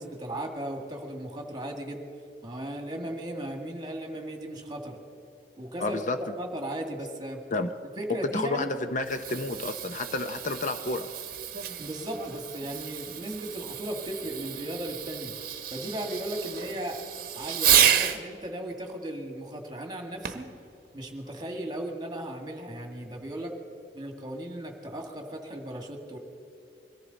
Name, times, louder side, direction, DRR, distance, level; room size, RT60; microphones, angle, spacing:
voice 1, 0.0-2.0 2.4-5.0 5.6-6.0 6.4-7.4 8.0-8.7 11.8-15.3 15.7-17.0 17.4-20.5 20.9-23.5 23.9-26.2, right 1 dB, 25° right, 3 dB, 1.9 m, -36 dB
voice 2, 5.8-6.2 7.5-7.7 8.3-11.1, left 2 dB, 45° left, 8 dB, 0.7 m, -30 dB
Fireworks, 8.9-18.2 20.2-20.6 21.3-21.4, right 10 dB, 55° right, 0.9 m, -30 dB
22.0 x 14.5 x 4.0 m, 2.7 s
head